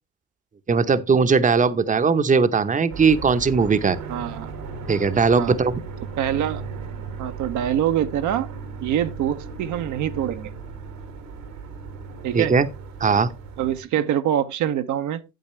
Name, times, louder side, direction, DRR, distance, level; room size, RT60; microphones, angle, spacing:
voice 1, 0.7-4.0 4.9-5.8 12.3-12.7 13.0-13.3, right 5 dB, 25° right, 0.8 m, -19 dB
sound 1, 2.9-13.8, right 5 dB, 85° right, 2.1 m, -36 dB
voice 2, 4.1-4.5 5.3-5.6 6.2-6.6 7.2-8.5 8.8-10.5 12.2-12.5 13.6-15.2, right 10 dB, 60° right, 0.8 m, -24 dB
9.0 x 8.0 x 3.2 m
hypercardioid pair, 55°, 33 cm